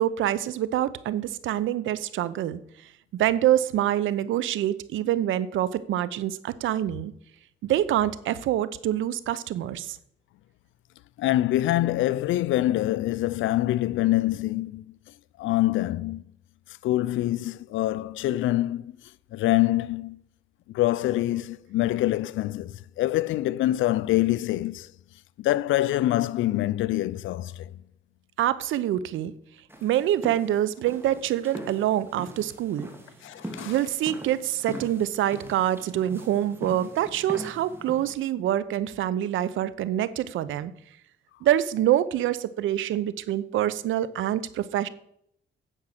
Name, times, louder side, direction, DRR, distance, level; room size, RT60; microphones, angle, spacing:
voice 1, 0.0-2.6 3.1-7.1 7.6-10.0 28.4-29.3 29.8-32.9 33.6-40.7 41.4-44.9, right 12 dB, 80° right, 0.7 m, -26 dB
voice 2, 11.2-14.8 15.4-16.2 16.8-18.9 19.3-20.2 20.7-24.9 25.4-27.6 33.2-33.7, left 15 dB, 80° left, 0.5 m, -25 dB
sound 1, 29.7-38.1, right 1 dB, 10° right, 2.2 m, -41 dB
10.0 x 7.2 x 6.6 m
cardioid pair, 90°, 20 cm